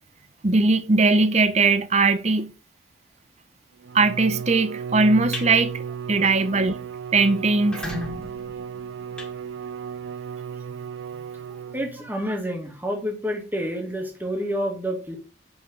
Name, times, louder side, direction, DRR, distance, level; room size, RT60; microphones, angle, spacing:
voice 1, 0.4-2.5 3.9-5.7 6.1-6.8 7.1-7.9, right 3 dB, 35° right, 0.8 m, -20 dB
Bowed string instrument, 3.8-12.1, right 7 dB, 75° right, 0.4 m, -35 dB
sound 1, 5.3-5.5 5.9-6.2 6.5-6.6 6.9-7.0 7.5-10.0, left 1 dB, 5° left, 1.9 m, -36 dB
voice 2, 11.5-15.2, equal, 10° right, 1.8 m, -29 dB
6.1 x 5.9 x 6.8 m
head